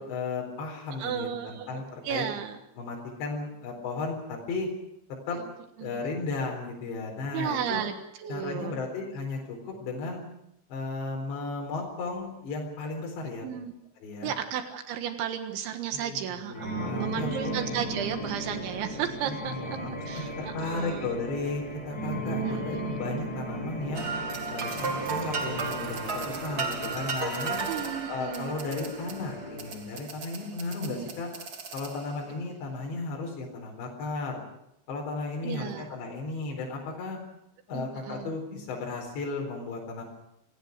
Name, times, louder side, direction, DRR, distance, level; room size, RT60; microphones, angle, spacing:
voice 1, 0.0-2.2 2.8-4.7 5.3-5.4 5.8-7.8 8.3-10.2 10.7-13.5 14.0-14.3 15.9-17.5 19.3-24.1 24.5-27.6 28.1-31.3 31.7-34.4 34.9-37.2 37.7-40.0, left 3 dB, 70° left, -1 dB, 6.4 m, -35 dB
voice 2, 1.0-2.6 5.8-5.9 7.3-7.9 8.2-8.8 13.4-13.7 14.2-21.2 22.4-23.0 27.7-28.5 30.9-31.1 35.4-35.8 37.7-38.3, right 9 dB, 80° right, 7 dB, 3.8 m, -34 dB
sound 1, 16.5-29.8, right 1 dB, 25° left, 7.5 m, -36 dB
sound 2, 23.9-32.3, right 4 dB, 40° right, 1.3 m, -35 dB
28.0 x 19.5 x 6.6 m, 0.83 s
omnidirectional pair, 5.3 m